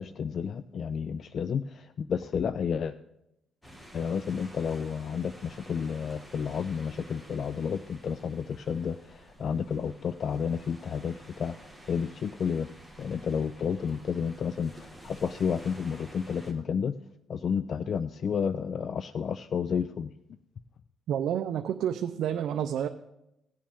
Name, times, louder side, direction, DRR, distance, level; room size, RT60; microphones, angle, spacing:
voice 1, 0.0-3.0 3.9-11.6 11.9-12.7 13.0-16.9 17.3-20.1, left 6 dB, 55° left, 14 dB, 0.3 m, -31 dB
sound 1, 3.6-16.5, right 1 dB, 10° left, 1.9 m, -51 dB
voice 2, 21.1-22.9, right 9 dB, 75° right, 7 dB, 0.5 m, -29 dB
17.0 x 7.5 x 3.6 m, 0.86 s
cardioid pair, 90°, 0 cm